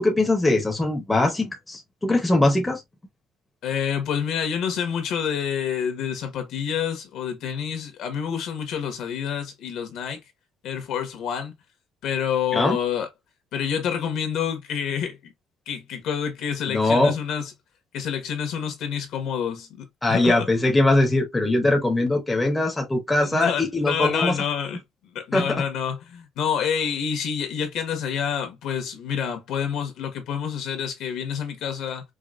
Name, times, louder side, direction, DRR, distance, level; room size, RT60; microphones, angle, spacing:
voice 1, 0.0-2.8 12.5-12.8 16.7-17.1 20.0-24.4 25.3-25.6, left 2 dB, 10° left, 0.7 m, -21 dB
voice 2, 3.6-10.2 10.6-11.5 12.0-13.1 13.5-15.3 15.7-17.5 17.9-20.4 23.2-24.8 25.1-32.0, left 8 dB, 65° left, 1.2 m, -28 dB
4.8 x 2.2 x 2.4 m
cardioid pair, 175°, 0 cm